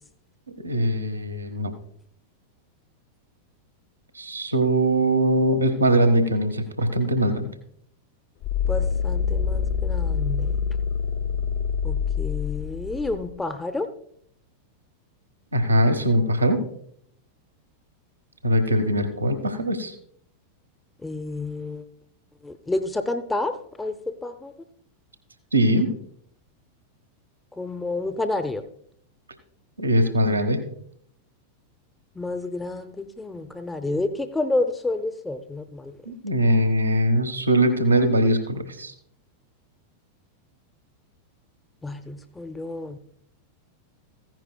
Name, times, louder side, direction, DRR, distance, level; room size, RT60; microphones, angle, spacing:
voice 1, 0.6-1.7 4.1-7.6 15.5-16.7 18.4-19.9 25.5-26.0 29.8-30.7 36.1-38.9, right 1 dB, 80° right, 6 dB, 1.1 m, -21 dB
sound 1, 8.4-13.3, left 6 dB, 50° left, 0.9 m, -26 dB
voice 2, 8.7-10.6 11.8-13.9 21.0-21.8 22.4-24.5 27.6-28.6 32.2-36.0 41.8-43.0, left 2 dB, 10° left, 8 dB, 0.7 m, -29 dB
15.0 x 10.5 x 2.2 m, 0.65 s
figure-of-eight pair, 90°, 0 cm